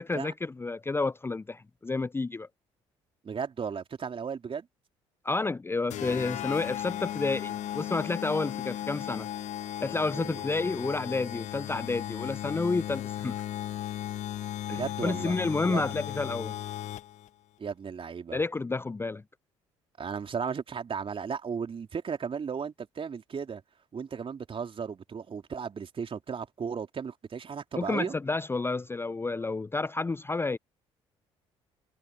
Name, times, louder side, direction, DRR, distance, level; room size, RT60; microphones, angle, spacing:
voice 1, 0.0-2.5 5.2-9.3 9.8-13.4 14.7-16.6 18.3-19.2 27.8-30.6, left 3 dB, 15° left, 0.6 m, -30 dB
voice 2, 3.2-4.7 10.1-10.4 14.7-15.4 15.6-15.8 17.6-18.4 20.0-23.6 23.9-28.1, right 6 dB, 35° right, 3.8 m, -35 dB
sound 1, 5.9-17.3, left 12 dB, 55° left, 1.4 m, -36 dB
figure-of-eight pair, 50°, 15 cm